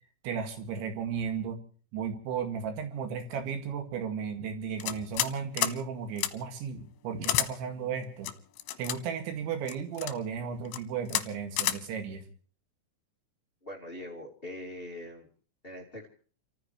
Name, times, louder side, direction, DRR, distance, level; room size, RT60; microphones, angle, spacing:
voice 1, 0.2-1.6 1.9-8.3 8.8-12.2, right 6 dB, 75° right, 6 dB, 4.3 m, -35 dB
sound 1, 4.8-5.3 5.6-5.8 6.2-6.3 7.2-7.5 8.2-9.0 9.7-10.1 10.7-10.8 11.1-11.3 11.6-11.8, left 13 dB, 80° left, 3.2 m, -29 dB
voice 2, 13.6-15.3 15.6-16.1, left 1 dB, 35° left, 1 dB, 0.9 m, -42 dB
30.0 x 14.5 x 3.1 m, 0.42 s
omnidirectional pair, 5.5 m